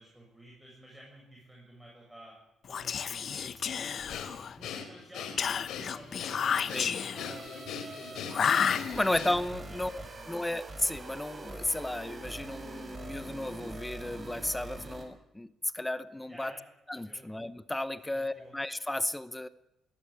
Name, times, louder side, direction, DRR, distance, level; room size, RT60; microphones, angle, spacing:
voice 1, 0.0-2.4 2.7-4.3 4.6-5.4 5.8-8.3 8.8-9.3 9.7-9.8 10.1-10.4 16.3-16.6 17.0-17.2 18.0-18.5, right 1 dB, 5° right, -2 dB, 7.5 m, -53 dB
Whispering, 2.6-4.6 5.4-7.4 8.3-9.3, left 7 dB, 55° left, 1.0 m, -31 dB
Breathing, 4.1-9.6, left 7 dB, 80° left, 3.3 m, -41 dB
sound 1, 7.1-15.0, right 2 dB, 30° right, 4.9 m, -44 dB
voice 2, 8.9-16.5 16.9-19.5, left 1 dB, 10° left, 15 dB, 0.9 m, -34 dB
20.5 x 18.0 x 8.7 m, 0.87 s
cardioid pair, 90°, 0 cm